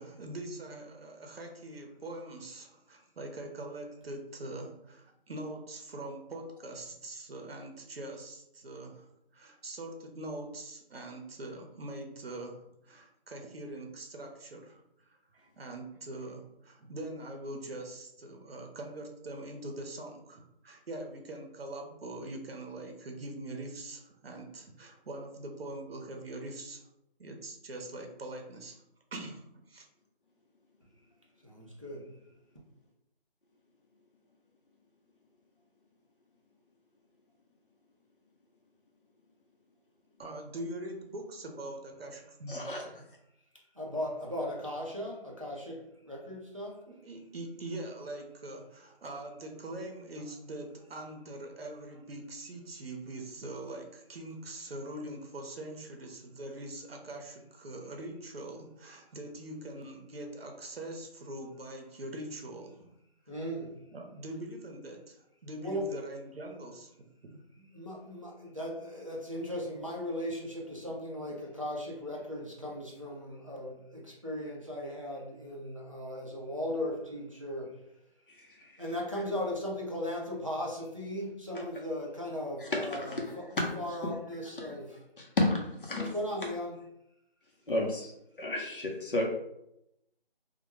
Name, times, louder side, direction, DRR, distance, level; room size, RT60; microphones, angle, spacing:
voice 1, 0.0-26.8 27.2-28.8 29.1-29.9 40.2-42.6 42.9-43.0 46.9-62.9 63.9-66.9 67.2-67.4, right 1 dB, 75° right, 0.7 m, -43 dB
voice 2, 31.4-32.2 43.7-46.8 63.3-63.7 65.6-65.9 67.7-77.8 78.8-83.5 83.8-85.0 86.0-86.8, left 1 dB, 35° right, 0.4 m, -37 dB
voice 3, 42.5-42.8 78.4-78.7 82.6-82.8 83.1-83.2 84.0-84.1 84.6-84.7 85.2-85.5 85.8-86.1 87.7-88.1 88.4-89.2, left 2 dB, 60° left, 0.7 m, -31 dB
2.1 x 2.1 x 3.0 m
figure-of-eight pair, 175°, 30 cm